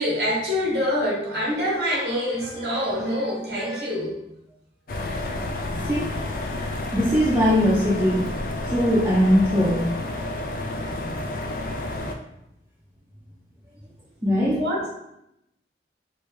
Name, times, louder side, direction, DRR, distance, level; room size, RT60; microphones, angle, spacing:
voice 1, 0.0-4.2 14.5-14.9, equal, 60° right, -5 dB, 1.3 m, -25 dB
sound 1, 4.9-12.1, left 2 dB, 50° left, 0.4 m, -30 dB
voice 2, 6.9-8.3 8.6-9.9 14.2-14.6, equal, 15° right, -8 dB, 0.6 m, -20 dB
3.1 x 2.7 x 3.2 m, 0.80 s
head